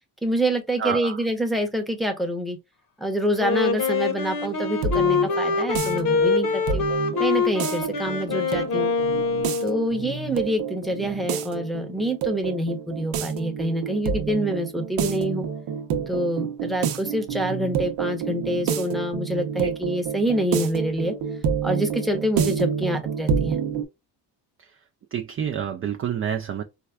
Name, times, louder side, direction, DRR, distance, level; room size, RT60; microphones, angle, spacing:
voice 1, 0.2-2.6 3.0-6.9 7.2-8.9 9.6-15.5 16.1-21.1 21.6-23.6, equal, ahead, 0.8 m, -26 dB
voice 2, 0.8-1.2 24.6-24.8 25.1-26.6, right 8 dB, 35° right, 0.4 m, -28 dB
Wind instrument woodwind instrument, 3.4-10.1, left 4 dB, 50° left, 0.9 m, -24 dB
sound 1, 4.4-23.8, right 7 dB, 90° right, 0.8 m, -29 dB
4.5 x 2.2 x 2.3 m
cardioid pair, 125°, 41 cm